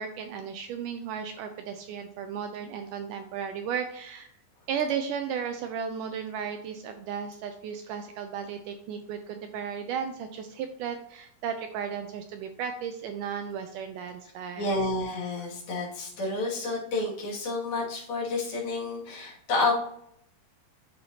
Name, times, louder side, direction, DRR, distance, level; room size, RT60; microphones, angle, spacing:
voice 1, 0.0-4.3 4.7-14.7, right 7 dB, 85° right, 6 dB, 1.8 m, -35 dB
voice 2, 14.6-19.8, left 2 dB, 75° left, -4 dB, 4.3 m, -30 dB
12.5 x 4.2 x 2.9 m, 0.71 s
omnidirectional pair, 4.3 m